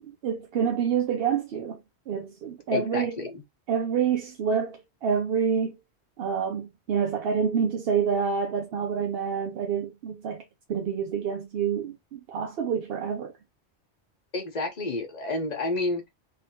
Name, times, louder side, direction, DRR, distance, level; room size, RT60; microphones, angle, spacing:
voice 1, 0.1-1.8 2.1-3.2 3.7-5.8 6.2-10.4 10.7-13.3, right 7 dB, 65° right, 0.8 m, -27 dB
voice 2, 2.7-3.4 14.3-16.1, left 2 dB, 40° left, 1.0 m, -30 dB
3.0 x 2.8 x 2.8 m
omnidirectional pair, 1.1 m